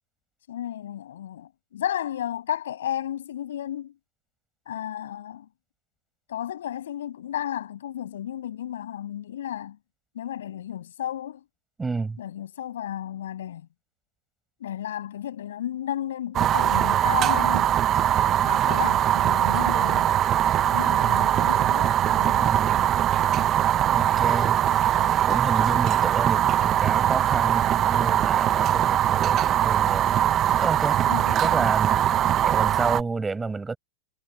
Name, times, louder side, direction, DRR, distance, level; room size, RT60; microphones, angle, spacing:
voice 1, 0.5-4.0 4.7-5.5 6.3-9.8 10.1-11.4 12.2-13.7 14.6-17.7 18.4-20.1 20.6-22.5 31.1-31.7, left 11 dB, 75° left, 7.4 m, -33 dB
voice 2, 11.8-12.2 22.4-22.9 23.9-24.6 25.2-30.1 30.6-32.1 32.4-33.8, right 4 dB, 10° right, 5.1 m, -30 dB
Fire, 16.3-33.0, right 11 dB, 30° right, 0.6 m, -21 dB
hypercardioid pair, 130°, 0 cm